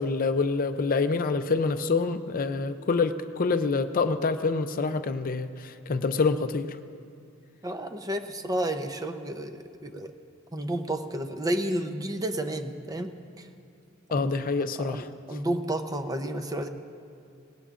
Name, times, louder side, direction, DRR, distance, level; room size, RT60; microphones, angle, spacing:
voice 1, 0.0-6.8 14.1-15.1, left 4 dB, 45° left, 9 dB, 0.5 m, -26 dB
voice 2, 7.6-10.1 10.5-13.5 14.1-14.3 14.8-16.7, right 1 dB, 20° right, 6 dB, 0.7 m, -31 dB
24.0 x 19.0 x 2.5 m, 2.4 s
head